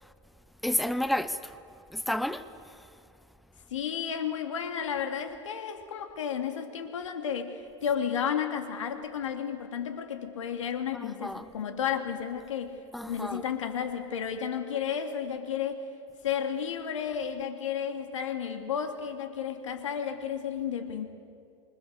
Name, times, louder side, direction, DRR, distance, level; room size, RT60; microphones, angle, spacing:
voice 1, 0.6-1.5 1.9-2.4 10.9-11.5 12.9-13.4, left 1 dB, ahead, 0.8 m, -30 dB
voice 2, 3.7-12.8 13.1-15.8 16.2-21.1, left 8 dB, 85° left, 2.8 m, -32 dB
27.5 x 24.5 x 6.7 m
hypercardioid pair, 115°, 16 cm